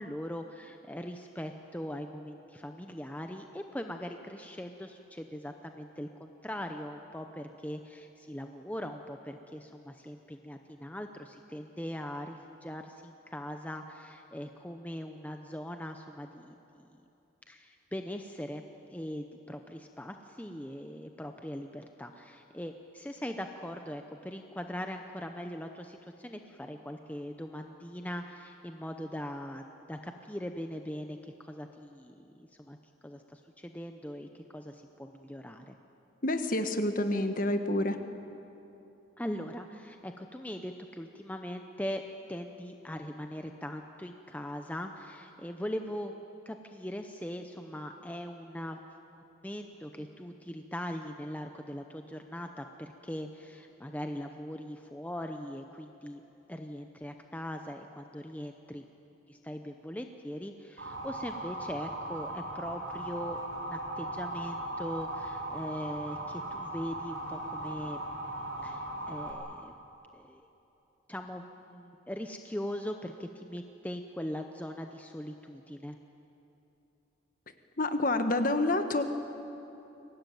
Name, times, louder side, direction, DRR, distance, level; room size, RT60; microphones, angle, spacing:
voice 1, 0.0-16.6 17.5-18.6 18.9-32.8 33.0-35.7 39.2-42.0 42.3-46.1 46.5-48.8 49.1-56.2 56.5-58.8 59.3-68.0 68.6-69.7 70.1-70.4 71.1-76.0, equal, 10° left, 5 dB, 0.7 m, -40 dB
voice 2, 36.2-38.0 77.8-79.0, left 2 dB, 40° left, 7 dB, 1.3 m, -28 dB
Motor vehicle (road) / Siren, 60.8-69.3, right 1 dB, 75° right, 5.8 m, -38 dB
23.5 x 18.5 x 9.3 m, 2.9 s
head